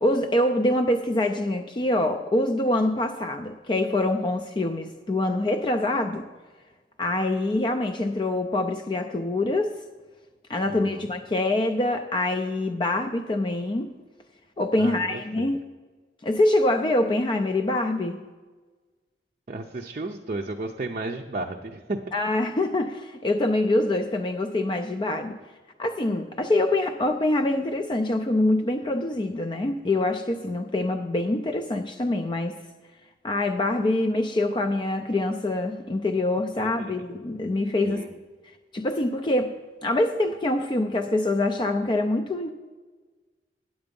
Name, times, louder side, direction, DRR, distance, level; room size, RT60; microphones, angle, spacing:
voice 1, 0.0-6.3 7.0-9.7 10.5-13.9 14.6-15.6 16.2-18.2 22.1-25.4 25.8-32.6 33.2-38.0 38.7-39.5 39.8-42.5, left 1 dB, 25° left, 5 dB, 0.4 m, -25 dB
voice 2, 10.7-11.1 14.8-15.5 19.5-22.0 36.6-36.9 37.8-38.1, right 2 dB, 40° right, 2 dB, 0.5 m, -33 dB
9.1 x 7.9 x 5.2 m, 1.3 s
head